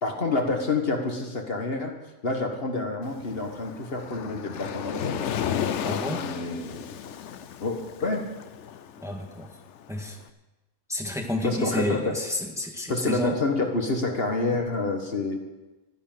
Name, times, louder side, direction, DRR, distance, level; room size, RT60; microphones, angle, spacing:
voice 1, 0.0-2.0 2.2-5.2 6.1-6.8 7.6-8.3 11.4-12.1 12.9-15.4, left 3 dB, 50° left, 3 dB, 1.7 m, -28 dB
Waves surf, 3.0-10.1, left 9 dB, 70° left, 1.0 m, -34 dB
voice 2, 5.8-6.2 9.0-9.5 9.9-10.2 10.9-13.4, left 1 dB, ahead, 1 dB, 1.6 m, -30 dB
13.0 x 10.5 x 7.4 m, 1.1 s
omnidirectional pair, 1.3 m